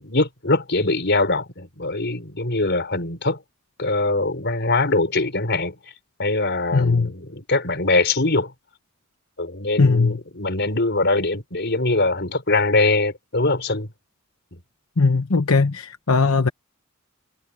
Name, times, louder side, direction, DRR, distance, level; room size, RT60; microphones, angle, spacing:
voice 1, 0.0-3.4 3.8-5.7 6.2-8.5 9.4-13.9, left 2 dB, 55° left, 4.9 m, -22 dB
voice 2, 6.7-7.1 9.8-10.2 15.0-16.5, left 4 dB, 80° left, 1.0 m, -19 dB
head